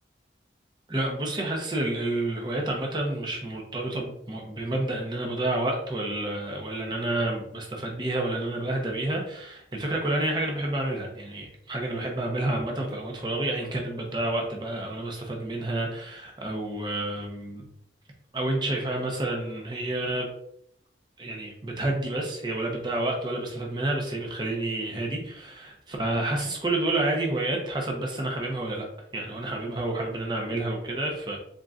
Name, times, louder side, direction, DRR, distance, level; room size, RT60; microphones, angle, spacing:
voice 1, 0.9-17.7 18.3-20.3 21.2-28.9 29.1-31.4, right 2 dB, 25° right, 0 dB, 0.7 m, -29 dB
3.9 x 3.7 x 2.4 m, 0.71 s
head